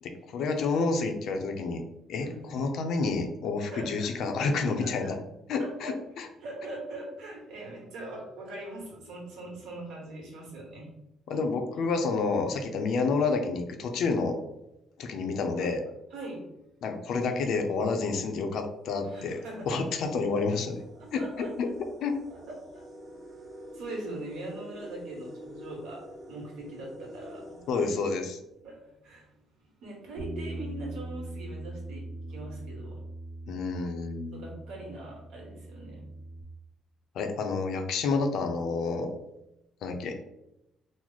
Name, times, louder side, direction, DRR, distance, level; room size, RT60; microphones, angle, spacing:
voice 1, 0.0-1.8 2.1-5.2 5.5-6.3 11.3-14.4 15.0-15.8 16.8-19.4 19.7-20.8 21.1-21.7 22.0-22.1 27.7-28.4 33.5-34.5 37.1-39.1 39.8-40.2, left 4 dB, 65° left, 5 dB, 0.5 m, -29 dB
voice 2, 4.6-5.1 5.6-6.0 6.4-10.9 11.3-11.4 15.6-15.7 16.1-16.5 19.0-19.8 20.9-21.5 22.3-22.8 23.7-27.4 27.8-28.0 28.6-29.3 29.6-33.0 34.3-36.1, right 2 dB, 85° right, -1 dB, 1.2 m, -41 dB
sound 1, 18.4-18.5 18.9-28.7, equal, 40° right, 0.8 m, -48 dB
Bass guitar, 30.2-36.4, right 2 dB, 65° right, 0.9 m, -41 dB
3.1 x 2.0 x 3.9 m, 0.88 s
cardioid pair, 135°, 0 cm